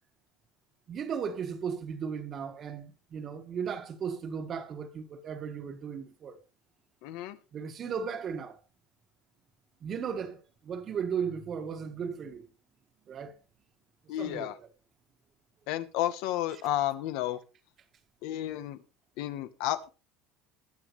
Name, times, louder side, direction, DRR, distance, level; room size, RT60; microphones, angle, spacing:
voice 1, 0.9-6.4 7.5-8.6 9.8-12.5 13.1-13.4 14.2-14.7, right 7 dB, 35° right, 1.4 m, -36 dB
voice 2, 7.0-7.4 14.1-14.5 15.7-17.4 18.2-18.8 19.2-19.9, left 13 dB, 75° left, 1.1 m, -32 dB
20.5 x 7.4 x 3.2 m
cardioid pair, 140°, 0 cm